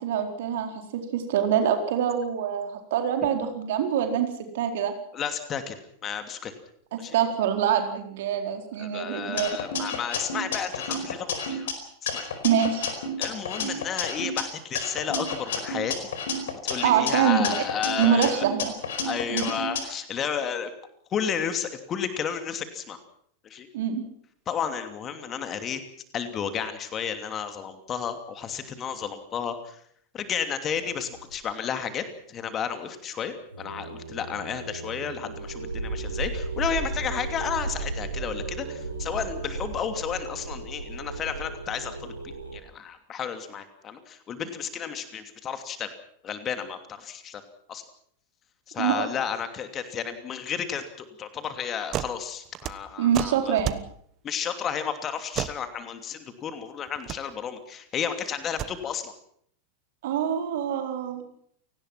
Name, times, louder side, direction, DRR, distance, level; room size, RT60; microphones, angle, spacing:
voice 1, 0.0-4.3 4.5-4.9 7.1-9.5 12.4-12.9 16.8-17.5 18.0-18.7 19.3-19.5 23.7-24.0 48.8-49.1 53.0-53.8 60.0-61.2, right 9 dB, 55° right, 4 dB, 4.2 m, -25 dB
voice 2, 5.1-5.8 6.0-6.5 7.0-7.2 8.8-11.7 12.0-12.2 13.2-16.1 16.6-18.4 19.0-20.7 21.1-23.0 23.4-23.7 24.5-25.8 26.1-29.8 30.1-45.9 46.2-47.4 47.7-47.8 48.7-53.6 54.2-59.1, left 7 dB, 25° left, 8 dB, 2.8 m, -32 dB
sound 1, 9.4-11.7 12.1-14.4 14.7-17.1 17.4-19.8, left 3 dB, 60° left, 4.6 m, -31 dB
sound 2, 30.7-31.3 33.5-42.6, right 3 dB, 80° right, 3.9 m, -35 dB
sound 3, 51.9-52.2 52.4-53.9 55.3-55.6 56.9-57.2 58.4-58.7, right 13 dB, 35° right, 1.2 m, -31 dB
29.0 x 18.5 x 6.0 m, 0.66 s
figure-of-eight pair, 90°, 0 cm